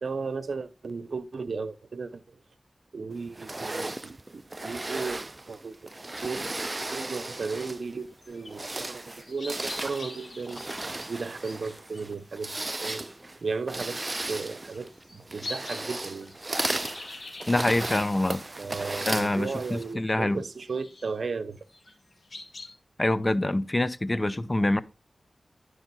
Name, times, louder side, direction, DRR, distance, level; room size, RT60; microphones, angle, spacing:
voice 1, 0.0-2.2 2.9-5.2 5.5-5.9 6.2-6.5 6.9-10.7 11.1-13.1 13.4-16.3 18.6-21.6, right 4 dB, 75° right, 0.7 m, -35 dB
sound 1, 3.4-7.9 8.4-19.9, right 2 dB, 35° right, 0.3 m, -35 dB
sound 2, 7.0-19.4 19.7-20.0 20.4-21.1 21.5-22.7, left 2 dB, 65° left, 1.8 m, -45 dB
voice 2, 17.5-18.4 19.1-20.4 23.0-24.8, left 1 dB, 35° left, 0.7 m, -25 dB
10.5 x 5.0 x 4.0 m
cardioid pair, 40°, 0 cm